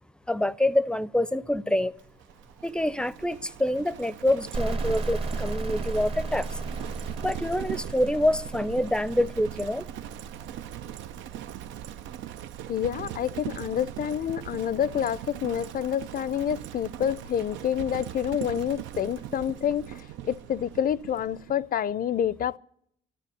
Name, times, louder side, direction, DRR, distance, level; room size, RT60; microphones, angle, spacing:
voice 1, 0.3-1.9 2.6-6.5 7.2-9.9, left 1 dB, 5° left, 0.6 m, -26 dB
Livestock farm animals working animals, 2.0-21.6, right 12 dB, 75° right, 0.6 m, -40 dB
sound 1, 4.5-12.1, right 3 dB, 30° right, 0.9 m, -35 dB
voice 2, 12.7-22.6, left 9 dB, 45° left, 0.5 m, -28 dB
13.0 x 11.0 x 10.0 m
supercardioid pair, 65°, 20 cm